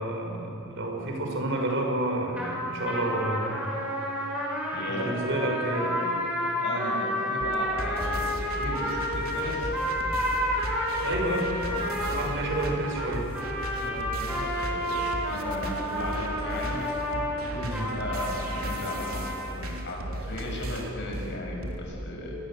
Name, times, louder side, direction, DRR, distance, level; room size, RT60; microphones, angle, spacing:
voice 1, 0.0-3.7 4.9-6.0 10.7-13.3 17.5-17.8, right 1 dB, 60° right, 1 dB, 6.2 m, -30 dB
sound 1, 2.3-19.5, equal, 5° right, 6.5 m, -31 dB
voice 2, 4.7-5.1 6.6-9.7 13.7-16.8 17.5-19.2 19.5-22.4, left 1 dB, 55° left, -1 dB, 7.6 m, -36 dB
sound 2, 7.4-21.8, right 1 dB, 85° right, 3.5 m, -35 dB
27.5 x 22.0 x 8.0 m, 2.9 s
head